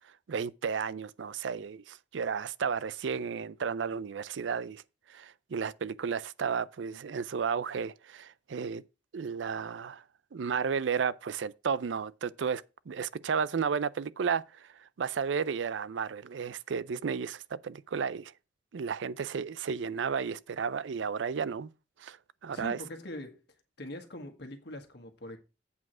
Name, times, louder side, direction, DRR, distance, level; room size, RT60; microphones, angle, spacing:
voice 1, 0.3-4.8 5.1-8.8 9.1-10.0 10.3-14.7 15.0-18.3 18.7-21.7 22.0-22.2 22.4-22.8, right 6 dB, 80° right, 0.4 m, -33 dB
voice 2, 22.5-23.4 23.8-25.4, left 1 dB, 65° left, 1.6 m, -42 dB
8.3 x 4.9 x 5.9 m
head